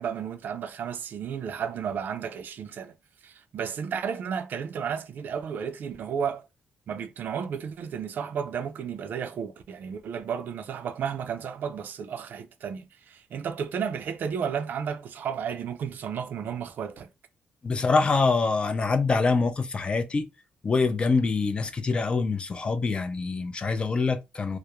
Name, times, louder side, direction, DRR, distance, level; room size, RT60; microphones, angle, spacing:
voice 1, 0.0-3.0 3.2-6.4 6.9-17.1, right 7 dB, 60° right, 0.4 m, -33 dB
voice 2, 17.6-20.3 20.6-24.6, left 4 dB, 30° left, 0.3 m, -25 dB
2.3 x 2.0 x 2.9 m
cardioid pair, 120°, 4 cm